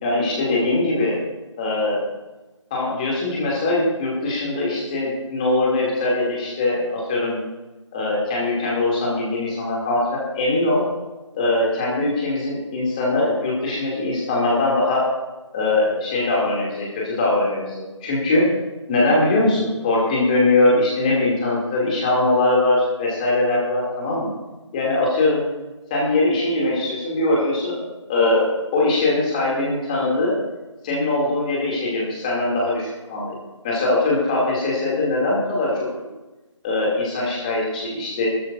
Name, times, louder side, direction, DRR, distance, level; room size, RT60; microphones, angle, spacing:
voice 1, 0.0-1.2 1.6-2.0 2.7-7.4 7.9-10.8 11.3-15.1 15.5-18.5 18.9-24.3 24.7-25.5 25.9-30.4 30.8-33.4 33.6-35.7 36.6-38.3, left 2 dB, 15° left, -4 dB, 2.6 m, -21 dB
19.5 x 13.0 x 2.6 m, 1.1 s
figure-of-eight pair, 165°, 16 cm